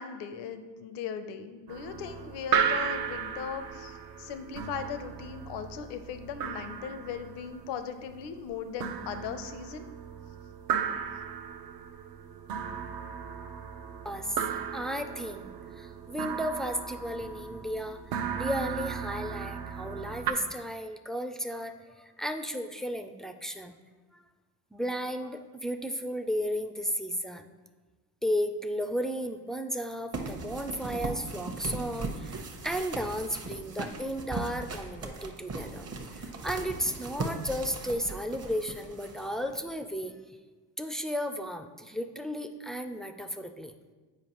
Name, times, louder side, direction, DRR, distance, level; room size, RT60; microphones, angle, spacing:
voice 1, 0.0-9.9, left 7 dB, 85° left, 10 dB, 0.6 m, -38 dB
sound 1, 1.7-20.3, right 7 dB, 60° right, 0.6 m, -35 dB
voice 2, 14.0-14.4 14.7-23.8 24.7-27.5 28.2-32.4 32.6-40.3 40.8-43.7, equal, ahead, 7 dB, 0.3 m, -34 dB
sound 2, 30.1-39.6, right 3 dB, 40° right, 0.9 m, -38 dB
8.0 x 4.8 x 3.0 m, 1.3 s
supercardioid pair, 80°, 40 cm